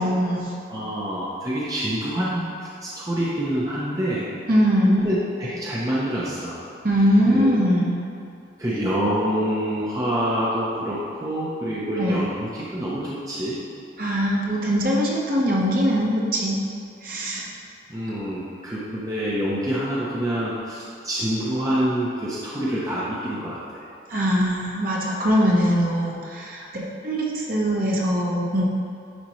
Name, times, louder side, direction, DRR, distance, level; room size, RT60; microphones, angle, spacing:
voice 1, 0.0-0.5 4.5-5.0 6.8-7.9 12.0-12.2 14.0-16.6 17.0-17.5 24.1-28.7, equal, 45° right, -4 dB, 1.1 m, -21 dB
voice 2, 0.7-2.5 2.8-4.2 4.9-6.6 7.3-7.5 8.6-13.6 17.9-23.8, equal, 20° right, -8 dB, 0.7 m, -26 dB
10.5 x 4.3 x 3.1 m, 2.6 s
head